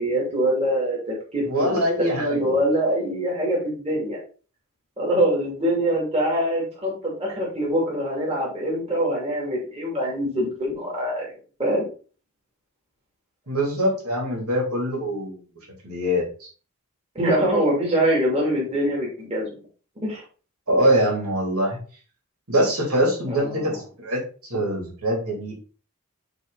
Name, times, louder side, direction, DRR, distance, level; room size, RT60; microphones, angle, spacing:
voice 1, 0.0-1.8 2.1-4.2 5.0-11.3 11.6-11.9 17.1-19.5 20.0-20.2 23.3-23.8, equal, 30° right, -3 dB, 2.7 m, -24 dB
voice 2, 1.4-2.5 13.5-15.4 15.8-16.5 20.7-21.8 22.5-25.5, equal, 75° right, -2 dB, 3.2 m, -23 dB
8.8 x 3.5 x 4.0 m, 0.39 s
head